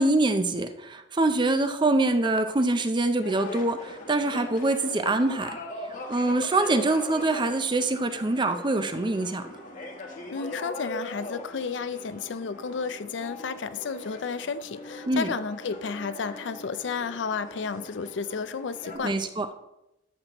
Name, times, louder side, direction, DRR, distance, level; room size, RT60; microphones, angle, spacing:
voice 1, 0.0-5.6 6.1-9.5 15.1-15.3 19.0-19.5, right 2 dB, 25° right, 9 dB, 0.5 m, -24 dB
sound 1, 3.2-19.0, left 1 dB, 45° left, 1.2 m, -41 dB
voice 2, 10.3-19.2, left 5 dB, 70° left, 12 dB, 0.5 m, -32 dB
12.5 x 6.0 x 3.0 m, 0.89 s
head